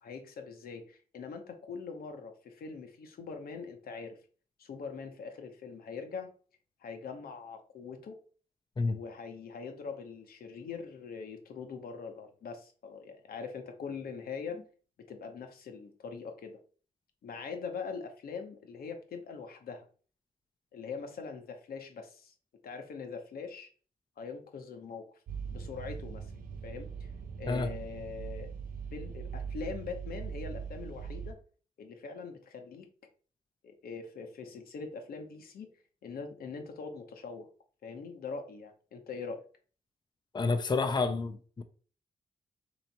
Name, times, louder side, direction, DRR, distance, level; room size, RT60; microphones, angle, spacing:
voice 1, 0.0-4.2 4.6-6.3 6.8-8.2 8.9-14.6 15.1-16.6 17.2-19.8 20.7-22.3 22.6-23.7 24.2-25.1 25.5-26.3 26.6-26.9 27.4-28.5 28.9-31.4 31.8-32.9 33.6-35.7 36.0-37.5 37.8-39.4, left 5 dB, 75° left, 0.8 m, -42 dB
sound 1, 25.3-31.3, right 6 dB, 70° right, 0.5 m, -41 dB
voice 2, 40.3-41.6, left 3 dB, 30° left, 0.5 m, -29 dB
3.1 x 3.0 x 4.0 m
cardioid pair, 55°, 16 cm